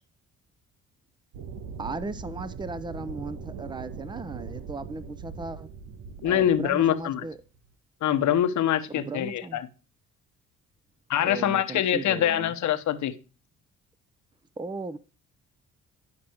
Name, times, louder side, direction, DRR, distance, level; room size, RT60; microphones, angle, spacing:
sound 1, 1.3-7.7, right 5 dB, 85° right, 1.3 m, -41 dB
voice 1, 1.8-5.7 6.2-7.4 8.9-9.6 11.2-12.5 14.6-15.0, right 3 dB, 15° right, 0.7 m, -37 dB
voice 2, 6.2-7.2 8.0-9.7 11.1-13.2, left 10 dB, 70° left, 1.1 m, -24 dB
11.0 x 5.9 x 4.5 m
cardioid pair, 90°, 30 cm